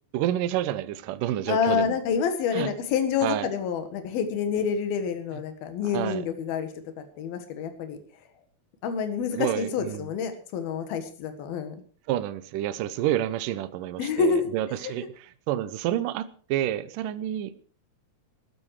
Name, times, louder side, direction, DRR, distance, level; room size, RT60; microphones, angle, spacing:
voice 1, 0.1-2.0 2.5-2.7 3.2-3.5 5.9-6.2 9.3-10.1 12.1-17.5, right 12 dB, 70° right, 13 dB, 2.2 m, -29 dB
voice 2, 1.5-6.7 7.0-8.0 8.8-11.8 14.0-14.5 14.8-14.9, left 6 dB, 75° left, 8 dB, 3.5 m, -27 dB
16.0 x 13.0 x 4.8 m, 0.42 s
omnidirectional pair, 4.4 m